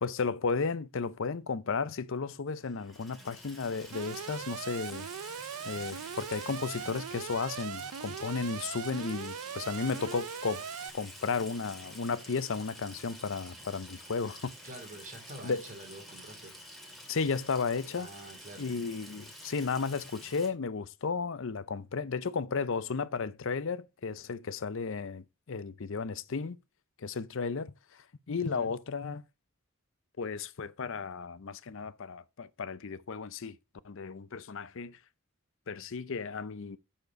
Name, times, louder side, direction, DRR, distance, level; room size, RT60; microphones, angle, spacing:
voice 1, 0.0-5.3 5.6-10.7 10.9-14.5 15.4-15.6 17.1-18.1 18.6-26.6 27.0-29.2 30.2-33.6 33.8-35.0 35.7-36.8, left 5 dB, 60° left, 0.6 m, -34 dB
Water tap faucet / Sink (filling or washing), 2.6-20.5, equal, ahead, 2.2 m, -49 dB
Alarm, 3.9-10.9, right 7 dB, 85° right, 0.5 m, -40 dB
voice 2, 14.6-16.5 18.0-18.7 28.4-28.7, right 1 dB, 35° right, 2.6 m, -47 dB
12.0 x 4.4 x 4.7 m
head